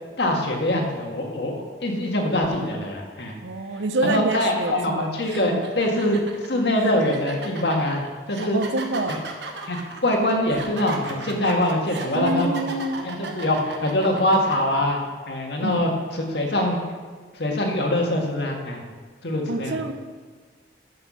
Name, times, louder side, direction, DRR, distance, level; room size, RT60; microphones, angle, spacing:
voice 1, 0.2-3.4 4.0-6.2 6.5-8.0 8.3-8.7 9.1-9.2 9.6-12.7 13.0-15.0 15.3-16.8 17.3-18.8 19.2-19.8, left 1 dB, 65° left, 1 dB, 1.8 m, -23 dB
voice 2, 2.5-2.8 3.4-5.1 5.5-5.7 8.5-9.2 12.1-13.0 15.6-15.9 19.5-19.9, right 2 dB, 85° right, 9 dB, 0.8 m, -27 dB
sound 1, 4.5-4.7 5.2-14.5, right 3 dB, 70° right, 1.2 m, -36 dB
9.6 x 6.8 x 6.4 m, 1.5 s
head